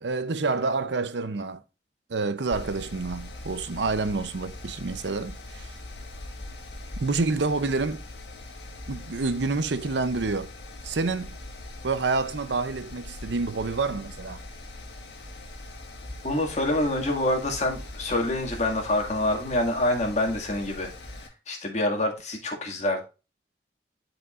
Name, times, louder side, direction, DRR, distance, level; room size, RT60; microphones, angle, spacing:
voice 1, 0.0-1.6 2.1-5.7 7.0-8.0 8.9-10.5 10.8-11.4 11.8-14.4, right 3 dB, 80° right, 0.7 m, -28 dB
Mechanical fan, 2.5-21.3, left 2 dB, 65° left, 1.9 m, -41 dB
voice 2, 16.2-20.9 21.5-23.0, left 1 dB, 40° left, 2.1 m, -26 dB
12.0 x 4.9 x 2.5 m
head